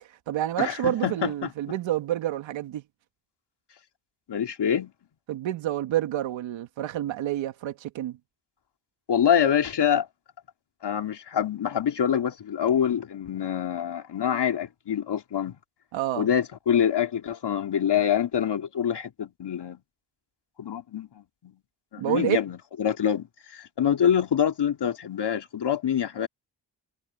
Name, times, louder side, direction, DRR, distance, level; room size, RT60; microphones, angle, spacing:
voice 1, 0.0-2.8 5.3-8.2 15.9-16.3 22.0-22.4, right 13 dB, 90° right, 2.5 m, -28 dB
voice 2, 0.6-1.5 4.3-4.9 9.1-10.1 10.8-15.6 16.2-19.8 20.6-21.5 21.9-26.3, left 8 dB, 65° left, 2.9 m, -25 dB
supercardioid pair, 50°, 44 cm